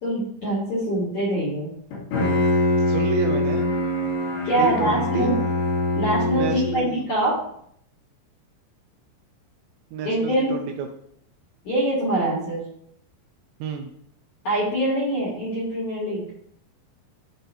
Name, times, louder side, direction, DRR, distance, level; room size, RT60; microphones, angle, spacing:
voice 1, 0.0-1.7 4.4-5.3 6.0-7.3 10.0-10.6 11.6-12.6 14.4-16.3, right 1 dB, 55° left, -7 dB, 1.7 m, -24 dB
Bowed string instrument, 1.9-7.0, left 1 dB, 85° left, 4.3 m, -23 dB
voice 2, 2.9-3.7 4.6-5.4 6.3-7.1 9.9-10.9 13.6-13.9, right 5 dB, 80° right, 4 dB, 2.5 m, -29 dB
11.5 x 4.0 x 2.6 m, 0.69 s
omnidirectional pair, 5.2 m